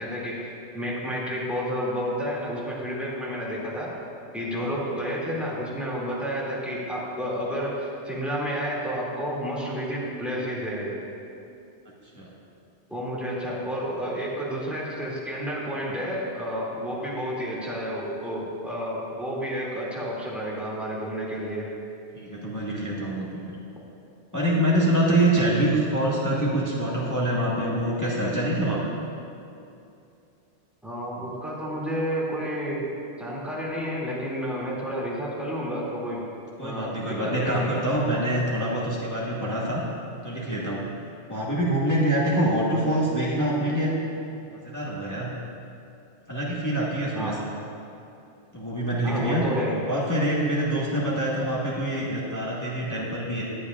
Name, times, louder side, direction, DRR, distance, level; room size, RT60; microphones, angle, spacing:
voice 1, 0.0-3.9 4.3-10.9 12.9-21.7 30.8-32.9 33.2-36.2 36.6-37.8 47.2-47.4 49.0-49.8, equal, ahead, -7 dB, 2.3 m, -30 dB
voice 2, 22.1-23.5 24.3-28.9 36.6-39.8 40.2-40.8 41.3-44.1 44.4-45.3 46.3-47.4 48.5-49.5 49.9-53.4, right 1 dB, 15° left, -6 dB, 1.4 m, -25 dB
20.0 x 8.4 x 2.4 m, 2.7 s
omnidirectional pair, 1.3 m